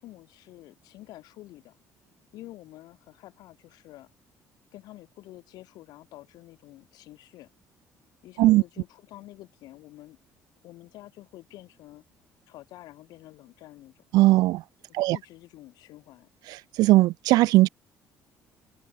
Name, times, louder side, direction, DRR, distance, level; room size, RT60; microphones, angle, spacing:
voice 1, 0.0-1.8 2.3-4.1 4.7-7.5 8.2-10.2 10.6-12.0 12.5-14.0 14.9-16.3, left 16 dB, 75° left, 6.1 m, -48 dB
voice 2, 14.1-14.6 15.0-15.2 16.8-17.7, right 18 dB, 75° right, 0.4 m, -18 dB
supercardioid pair, 85°, 7 cm